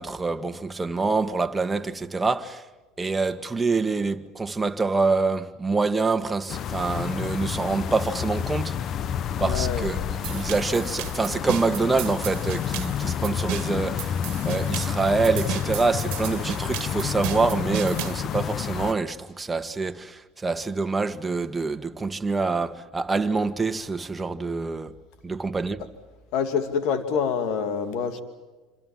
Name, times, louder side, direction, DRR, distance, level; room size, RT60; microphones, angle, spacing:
voice 1, 0.0-2.7 3.0-8.8 9.4-14.2 14.4-24.9 25.2-25.9, right 3 dB, 15° right, 1.8 m, -26 dB
sound 1, 6.5-18.9, left 9 dB, 45° left, 0.9 m, -29 dB
voice 2, 9.3-9.8 26.3-28.2, left 6 dB, 65° left, 2.7 m, -26 dB
sound 2, 10.2-18.2, right 15 dB, 65° right, 1.7 m, -35 dB
27.0 x 26.5 x 7.5 m
supercardioid pair, 90°, 0 cm